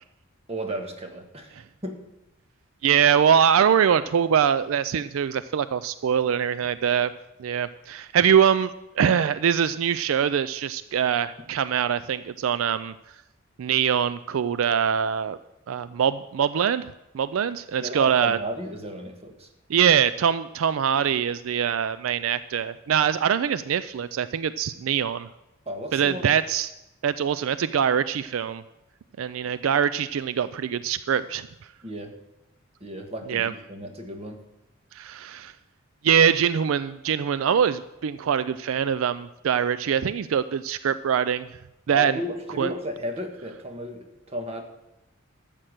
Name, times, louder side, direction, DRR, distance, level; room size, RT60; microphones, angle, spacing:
voice 1, 0.5-1.6 1.8-2.0 17.8-19.5 25.7-26.3 31.8-32.2 32.8-34.4 41.9-44.6, equal, 30° right, 4 dB, 1.4 m, -34 dB
voice 2, 2.8-7.1 7.4-12.9 13.6-15.4 15.7-16.9 17.1-18.4 19.7-25.3 25.9-26.7 27.0-28.6 29.2-31.5 33.3-33.5 34.9-35.5 36.0-41.5 41.9-42.2 42.6-42.7, right 8 dB, 75° right, 15 dB, 0.4 m, -23 dB
13.0 x 7.5 x 6.5 m, 0.94 s
head